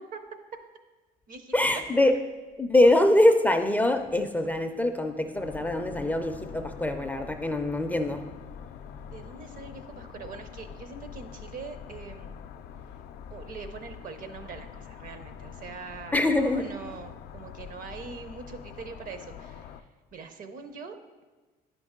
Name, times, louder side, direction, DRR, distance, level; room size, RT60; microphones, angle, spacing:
voice 1, 1.5-2.2 2.6-8.2 16.1-16.7, left 1 dB, 10° left, 5 dB, 0.4 m, -23 dB
sound 1, 5.4-19.8, left 8 dB, 75° left, 0.4 m, -44 dB
voice 2, 9.0-12.4 13.3-19.8 20.1-21.0, right 5 dB, 55° right, 8 dB, 0.7 m, -43 dB
9.7 x 5.3 x 3.6 m, 1.3 s
cardioid pair, 110°, 17 cm